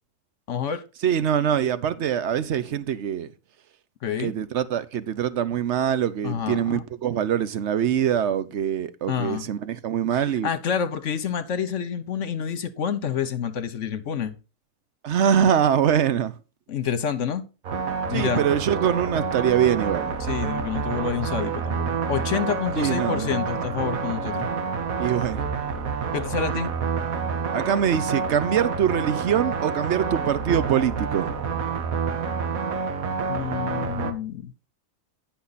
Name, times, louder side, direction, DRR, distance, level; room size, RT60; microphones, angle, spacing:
voice 1, 0.5-0.8 4.0-4.3 6.2-6.8 9.1-9.4 10.1-14.4 16.7-17.4 18.1-18.4 20.2-24.5 26.1-26.7 33.3-34.5, left 7 dB, 65° left, 1.2 m, -28 dB
voice 2, 1.0-3.3 4.2-10.5 15.0-16.3 18.1-20.1 22.8-23.3 25.0-25.4 27.5-31.4, right 9 dB, 60° right, 1.0 m, -23 dB
sound 1, 17.6-34.1, right 5 dB, 80° right, 1.5 m, -28 dB
10.0 x 5.9 x 4.0 m
omnidirectional pair, 1.4 m